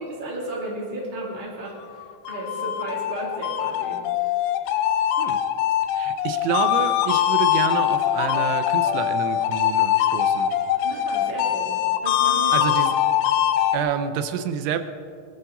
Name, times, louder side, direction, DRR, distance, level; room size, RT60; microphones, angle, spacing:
voice 1, 0.0-4.4 10.8-12.7, right 2 dB, 15° right, -3 dB, 2.1 m, -34 dB
sound 1, 2.0-13.8, left 11 dB, 85° left, 2.4 m, -22 dB
voice 2, 5.9-10.5 12.5-12.9 13.7-14.8, right 8 dB, 85° right, 9 dB, 3.2 m, -28 dB
20.5 x 15.0 x 4.0 m, 2.3 s
omnidirectional pair, 5.2 m